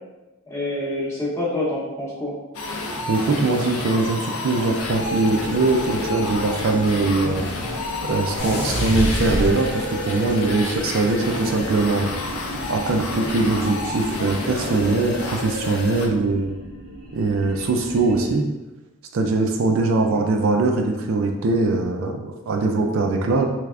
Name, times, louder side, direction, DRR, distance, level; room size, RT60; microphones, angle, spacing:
voice 1, 0.5-2.4 8.5-8.7 20.1-20.2, left 1 dB, 10° left, -7 dB, 0.8 m, -27 dB
sound 1, 2.5-16.1, left 2 dB, 70° left, 0.5 m, -30 dB
voice 2, 3.1-7.5 8.0-12.1 12.7-16.5 17.1-18.5 19.1-23.5, right 3 dB, 60° right, 3 dB, 0.3 m, -21 dB
sound 2, 4.8-18.4, equal, 80° right, 0.8 m, -36 dB
sound 3, 8.4-10.2, equal, 50° left, 0.8 m, -25 dB
3.3 x 3.2 x 2.4 m, 1.1 s
head